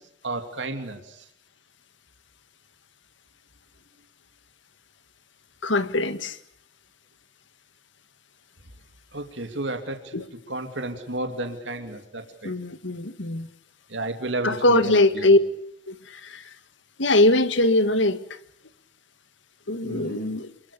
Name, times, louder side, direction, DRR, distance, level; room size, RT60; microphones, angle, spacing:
voice 1, 0.2-1.2 9.1-10.2 10.5-12.5 13.9-15.3 19.8-20.3, right 2 dB, 70° right, 2.9 m, -32 dB
voice 2, 5.6-6.4 10.1-10.3 12.4-13.5 14.4-15.4 15.9-16.5 17.0-18.4 19.7-20.5, left 2 dB, 75° left, 1.8 m, -22 dB
28.5 x 21.5 x 6.9 m
head